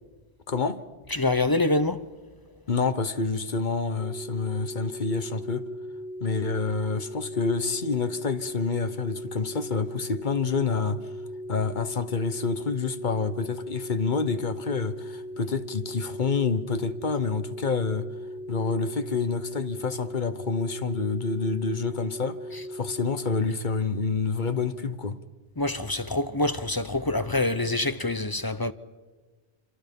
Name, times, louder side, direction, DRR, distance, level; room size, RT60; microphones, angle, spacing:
voice 1, 0.5-0.8 2.7-5.6 6.2-11.0 11.5-18.1 18.5-22.4 22.7-25.2, left 4 dB, 50° left, 1.1 m, -28 dB
voice 2, 1.1-2.1 25.6-28.7, left 2 dB, 25° left, 0.6 m, -26 dB
sound 1, 4.0-23.4, equal, 65° right, 1.5 m, -39 dB
27.5 x 26.0 x 5.4 m
omnidirectional pair, 1.1 m